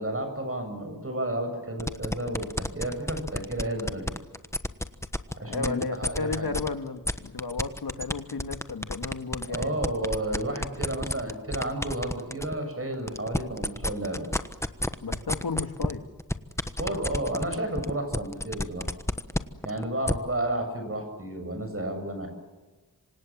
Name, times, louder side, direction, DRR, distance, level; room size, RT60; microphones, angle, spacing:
voice 1, 0.0-4.1 5.4-6.5 9.5-14.3 16.8-18.9 19.6-22.3, right 1 dB, 40° right, 7.5 m, -32 dB
sound 1, 1.8-6.7 7.0-12.5 12.9-20.1, left 1 dB, 5° left, 1.3 m, -29 dB
voice 2, 5.3-9.8 15.0-16.1, left 4 dB, 90° left, 1.9 m, -33 dB
27.0 x 26.0 x 7.5 m
wide cardioid pair, 80°, 36 cm